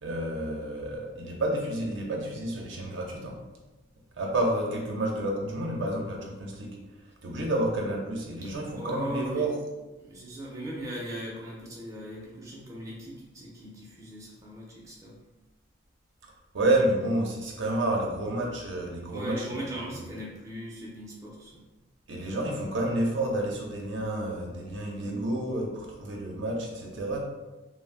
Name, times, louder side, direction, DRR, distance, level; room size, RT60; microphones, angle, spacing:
voice 1, 0.0-3.4 4.1-9.5 16.5-19.5 22.1-27.2, right 1 dB, 65° right, -1 dB, 0.6 m, -30 dB
voice 2, 8.4-9.5 10.0-15.2 19.1-21.6, right 1 dB, 15° right, -5 dB, 0.4 m, -38 dB
2.5 x 2.0 x 3.2 m, 1.1 s
head